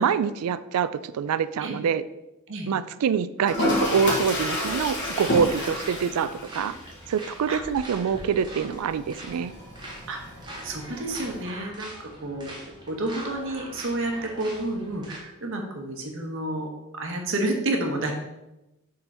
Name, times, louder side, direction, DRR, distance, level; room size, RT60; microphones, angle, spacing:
voice 1, 0.0-2.0 2.7-6.7 7.1-9.5, right 7 dB, 85° right, 15 dB, 0.3 m, -25 dB
Toilet flush, 3.4-11.4, left 1 dB, 50° left, 1.4 m, -31 dB
sound 1, 3.5-15.2, right 1 dB, 20° right, 1.2 m, -43 dB
voice 2, 10.6-12.5 12.9-18.1, right 2 dB, 60° right, 3 dB, 1.1 m, -30 dB
6.8 x 3.9 x 4.2 m, 0.96 s
head